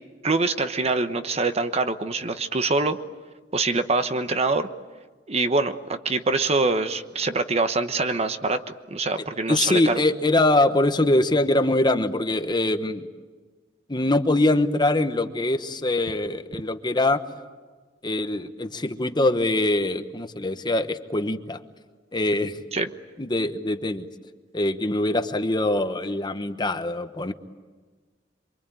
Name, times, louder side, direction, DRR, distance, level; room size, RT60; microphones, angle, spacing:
voice 1, 0.2-3.0 3.5-4.7 5.3-8.6 8.9-10.0 22.7-22.9, right 3 dB, 35° right, 9 dB, 1.1 m, -24 dB
voice 2, 9.5-13.1 13.9-17.2 18.0-21.6 22.1-22.6 23.2-24.1 24.5-27.3, left 2 dB, 25° left, 9 dB, 1.1 m, -23 dB
27.5 x 23.5 x 9.1 m, 1.4 s
head